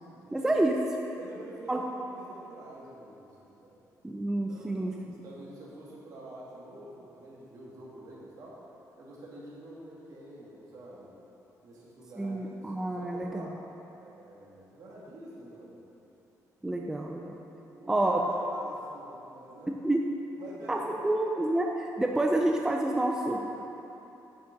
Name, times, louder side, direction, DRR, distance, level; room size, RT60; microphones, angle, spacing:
voice 1, 0.3-0.7 1.7-1.8 4.0-5.1 12.2-13.5 16.6-17.4 17.9-18.2 19.7-20.0 20.7-21.7 22.0-23.5, right 1 dB, 10° right, 1 dB, 0.5 m, -28 dB
voice 2, 1.2-3.8 4.5-8.6 9.0-11.1 11.6-13.6 13.9-15.8 17.3-19.7 20.4-21.4 23.3-23.5, right 1 dB, 60° right, -6 dB, 2.3 m, -48 dB
9.2 x 6.5 x 5.3 m, 3.0 s
cardioid pair, 145°, 7 cm